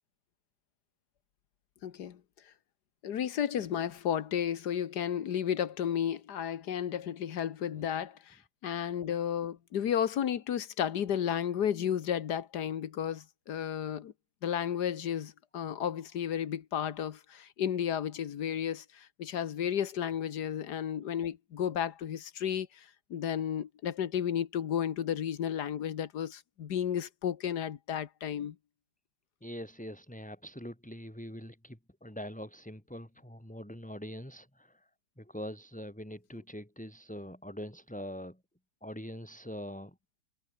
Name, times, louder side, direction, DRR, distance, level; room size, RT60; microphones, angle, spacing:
voice 1, 1.8-2.2 2.5-2.6 3.0-14.1 14.4-28.6, left 9 dB, 60° left, 1.6 m, -33 dB
voice 2, 29.4-34.9 35.2-38.4 38.8-40.0, equal, 5° left, 3.7 m, -43 dB
omnidirectional pair, 2.1 m